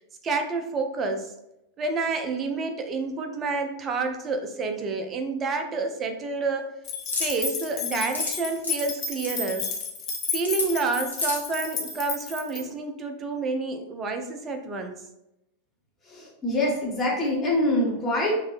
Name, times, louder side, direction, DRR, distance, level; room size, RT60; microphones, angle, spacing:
voice 1, 0.2-1.3 1.8-6.7 7.2-9.7 10.3-14.9, right 3 dB, 25° right, 5 dB, 0.4 m, -29 dB
sound 1, 6.8-12.6, left 5 dB, 35° left, 0.5 m, -32 dB
sound 2, 7.1-7.3 7.9-8.3 8.6-8.8 9.2-9.3 10.4-10.7 11.1-11.5, left 2 dB, 85° left, 0.8 m, -28 dB
voice 2, 16.0-18.4, left 1 dB, 20° left, -3 dB, 1.0 m, -25 dB
2.6 x 2.0 x 3.0 m, 0.86 s
figure-of-eight pair, 90°, 0 cm